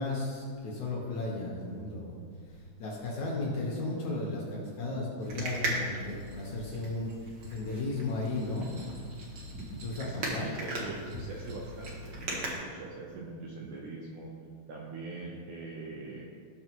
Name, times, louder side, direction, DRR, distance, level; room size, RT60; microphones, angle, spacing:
voice 1, 0.0-2.2 2.5-7.1 7.5-8.7 9.7-10.6, left 2 dB, 60° left, -3 dB, 2.2 m, -35 dB
sound 1, 5.2-12.5, right 1 dB, 90° right, 1.0 m, -38 dB
voice 2, 10.1-14.3 14.7-16.3, right 3 dB, 75° right, -2 dB, 1.9 m, -42 dB
18.0 x 6.5 x 3.1 m, 2.1 s
omnidirectional pair, 4.6 m